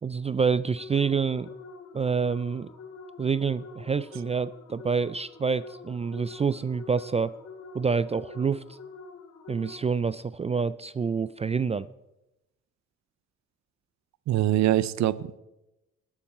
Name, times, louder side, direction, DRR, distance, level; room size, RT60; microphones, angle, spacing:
voice 1, 0.0-1.5 1.9-2.7 3.2-7.4 7.7-8.8 9.5-11.9, right 5 dB, 20° right, 16 dB, 0.3 m, -27 dB
sound 1, 0.8-10.1, left 4 dB, 60° left, 1.9 m, -46 dB
voice 2, 14.3-15.4, right 13 dB, 65° right, 16 dB, 0.7 m, -24 dB
20.0 x 7.3 x 4.3 m, 0.92 s
cardioid pair, 90°, 30 cm